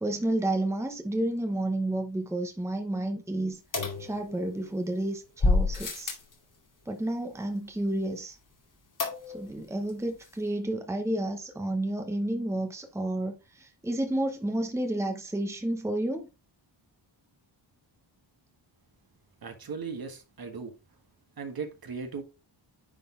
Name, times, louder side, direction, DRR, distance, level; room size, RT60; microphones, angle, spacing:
voice 1, 0.0-3.6 4.0-6.2 6.9-8.4 9.3-16.3, right 1 dB, 5° right, 0.9 m, -31 dB
sound 1, 3.7-4.7 5.4-6.3 9.0-9.6 9.9-10.0 10.2-10.3, left 3 dB, 40° left, 2.4 m, -28 dB
voice 2, 19.4-20.7 21.4-22.2, right 5 dB, 50° right, 1.6 m, -37 dB
9.8 x 4.1 x 3.7 m
wide cardioid pair, 155°, 46 cm